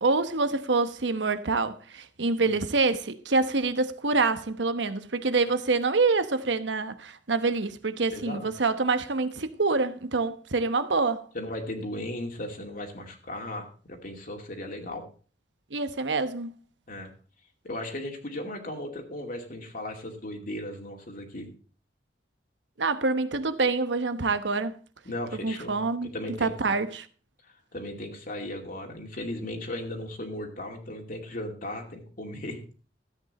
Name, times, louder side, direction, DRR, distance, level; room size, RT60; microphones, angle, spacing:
voice 1, 0.0-11.2 15.7-16.5 22.8-24.7 25.4-26.1 26.4-27.1, right 3 dB, 80° right, 1.0 m, -26 dB
voice 2, 8.1-8.5 11.3-15.0 16.9-17.1 17.6-21.5 25.0-25.8 26.1-26.8 27.4-32.6, left 1 dB, 50° left, 2.4 m, -36 dB
13.5 x 8.7 x 4.2 m
head